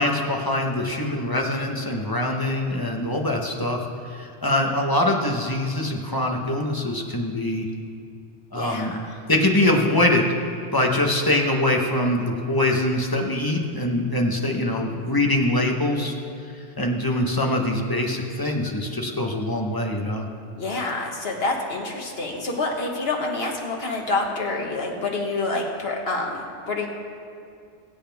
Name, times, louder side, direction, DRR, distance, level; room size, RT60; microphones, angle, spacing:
voice 1, 0.0-7.7 8.5-9.0 9.3-10.3 10.7-16.1 16.8-20.3, left 1 dB, 20° left, 1 dB, 1.2 m, -23 dB
voice 2, 8.6-8.9 20.6-26.9, left 3 dB, 60° left, 0 dB, 1.8 m, -27 dB
22.5 x 8.3 x 3.5 m, 2.3 s
omnidirectional pair, 1.2 m